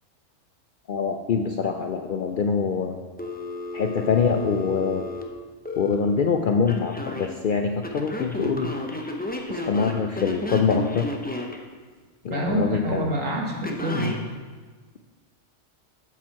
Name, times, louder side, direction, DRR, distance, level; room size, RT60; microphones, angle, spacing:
voice 1, 0.9-3.0 3.7-5.1 5.8-8.7 9.5-11.1 12.2-13.1, left 5 dB, 65° left, 4 dB, 0.5 m, -24 dB
Telephone, 3.2-5.9 6.7-7.3 7.8-11.6 13.6-14.2, left 2 dB, 10° left, 0.4 m, -33 dB
voice 2, 12.3-14.2, equal, 85° right, -1 dB, 1.9 m, -26 dB
7.9 x 7.4 x 4.6 m, 1.4 s
omnidirectional pair, 1.3 m